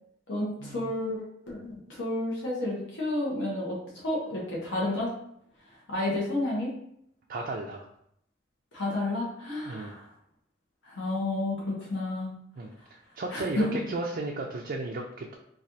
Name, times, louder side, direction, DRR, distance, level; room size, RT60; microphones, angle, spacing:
voice 1, 0.3-5.1 5.9-6.7 8.7-10.1 10.8-12.3 13.3-13.8, left 1 dB, 70° left, -4 dB, 0.9 m, -31 dB
voice 2, 7.3-7.8 9.7-9.9 12.6-15.4, right 2 dB, 50° right, 0 dB, 0.4 m, -34 dB
4.2 x 2.4 x 2.6 m, 0.73 s
head